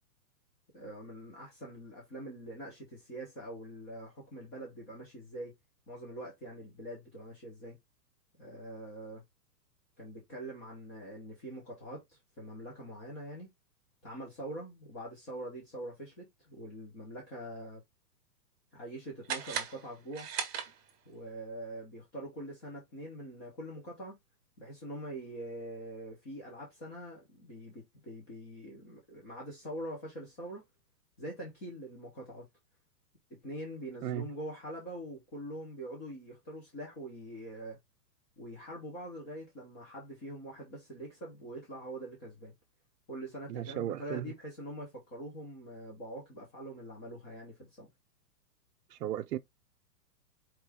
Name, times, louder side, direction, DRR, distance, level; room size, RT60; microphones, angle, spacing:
voice 1, 0.7-5.5 5.9-7.8 8.4-9.2 10.0-13.5 14.0-17.8 18.7-20.3 21.1-24.2 24.6-30.6 31.2-32.5 33.3-37.8 38.4-42.5 43.1-47.9, right 1 dB, 15° left, 0.5 m, -44 dB
sound 1, 19.2-21.2, right 8 dB, 15° right, 0.9 m, -38 dB
voice 2, 43.5-44.3 48.9-49.4, right 11 dB, 75° right, 0.7 m, -35 dB
4.6 x 3.0 x 3.4 m
hypercardioid pair, 160°, 49 cm